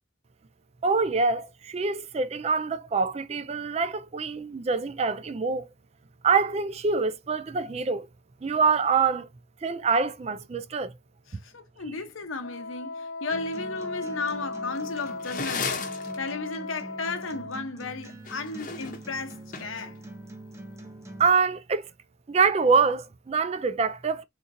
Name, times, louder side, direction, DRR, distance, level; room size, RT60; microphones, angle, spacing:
voice 1, 0.8-5.7 6.2-8.1 8.4-9.3 9.6-10.9 21.2-21.9 22.3-24.2, right 5 dB, 30° right, 0.3 m, -25 dB
voice 2, 11.3-20.0, left 4 dB, 85° left, 0.9 m, -35 dB
Wind instrument woodwind instrument, 12.4-17.6, left 3 dB, 60° left, 0.4 m, -37 dB
Acoustic guitar, 13.3-21.3, right 1 dB, 15° right, 0.7 m, -44 dB
sound 1, 14.7-16.2 18.1-19.9, left 5 dB, 40° left, 0.8 m, -34 dB
3.7 x 2.8 x 2.6 m
head